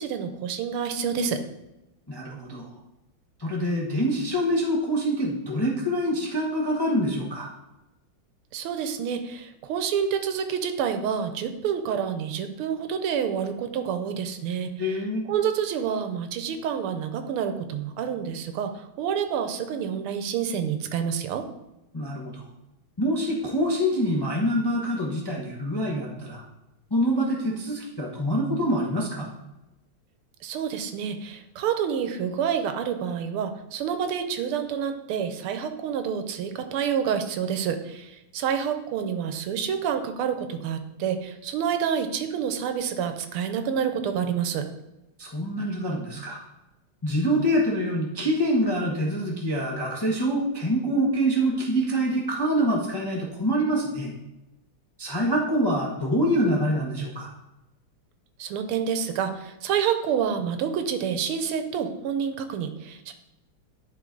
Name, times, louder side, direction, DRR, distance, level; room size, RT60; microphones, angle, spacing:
voice 1, 0.0-1.4 8.5-15.0 15.3-21.5 30.4-44.7 58.4-63.1, right 7 dB, 85° right, 8 dB, 1.6 m, -28 dB
voice 2, 2.1-2.7 3.4-7.5 14.8-15.3 21.9-22.4 23.0-26.4 26.9-29.3 45.2-46.4 47.0-54.1 55.0-57.3, equal, 25° left, -3 dB, 0.5 m, -25 dB
11.0 x 3.9 x 3.8 m, 0.95 s
omnidirectional pair, 2.4 m